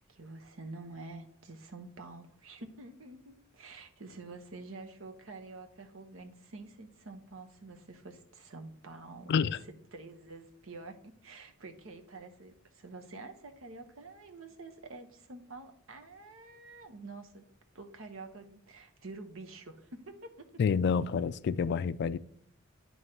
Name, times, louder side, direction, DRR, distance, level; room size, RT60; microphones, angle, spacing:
voice 1, 0.1-9.5 9.9-17.4 17.7-20.5, right 3 dB, 75° right, 1.0 m, -48 dB
voice 2, 20.6-22.2, left 6 dB, 55° left, 0.3 m, -28 dB
9.2 x 3.1 x 5.5 m
head